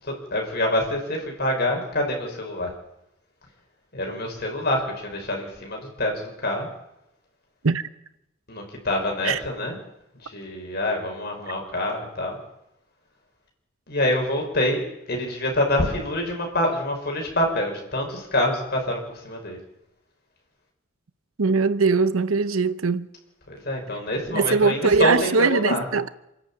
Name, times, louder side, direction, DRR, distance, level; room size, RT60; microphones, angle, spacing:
voice 1, 0.0-2.7 3.9-6.7 8.5-9.8 10.2-12.4 13.9-14.8 15.1-19.6 23.5-25.8, left 1 dB, 50° left, 5.8 m, -26 dB
voice 2, 21.4-23.1 24.3-26.1, right 4 dB, 85° right, 0.8 m, -21 dB
27.0 x 11.0 x 8.8 m
head